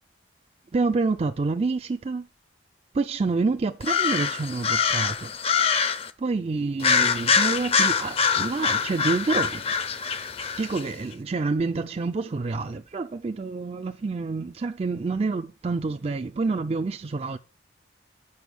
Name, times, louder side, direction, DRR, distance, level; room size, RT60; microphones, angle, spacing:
voice 1, 0.7-2.3 2.9-5.3 6.2-9.7 10.6-17.4, right 3 dB, 30° right, 0.4 m, -28 dB
sound 1, 3.8-6.1 6.8-10.8, left 6 dB, 30° left, 0.6 m, -24 dB
7.0 x 5.5 x 6.2 m
head